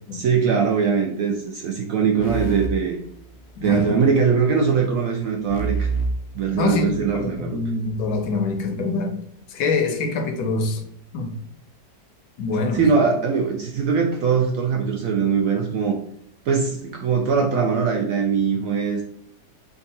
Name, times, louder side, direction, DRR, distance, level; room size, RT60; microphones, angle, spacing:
voice 1, 0.1-3.0 3.6-5.9 6.3-7.6 12.7-16.0 16.5-19.0, right 6 dB, 75° right, 2 dB, 0.8 m, -21 dB
sound 1, 2.2-3.8 5.5-7.3, right 4 dB, 90° left, 1.3 m, -29 dB
voice 2, 3.6-4.0 6.5-9.1 9.5-10.8 11.1-11.4 12.4-12.9, left 3 dB, 70° left, 6 dB, 1.1 m, -25 dB
3.6 x 2.3 x 4.0 m, 0.70 s
omnidirectional pair, 1.9 m